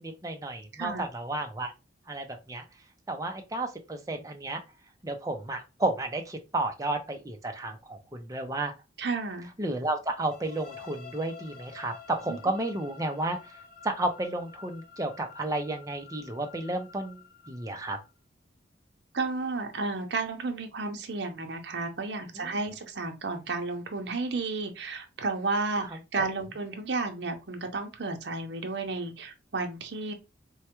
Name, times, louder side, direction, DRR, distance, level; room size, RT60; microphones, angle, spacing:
voice 1, 0.0-1.7 2.1-2.6 3.1-4.6 5.0-8.7 9.6-13.4 13.8-18.0 22.3-22.6 26.2-26.3, right 2 dB, 20° right, 0.5 m, -32 dB
voice 2, 0.7-1.1 9.0-9.5 12.3-12.4 19.1-30.1, right 3 dB, 65° right, 0.7 m, -32 dB
sound 1, 10.3-18.1, left 6 dB, 50° left, 0.6 m, -50 dB
4.6 x 2.2 x 2.9 m
head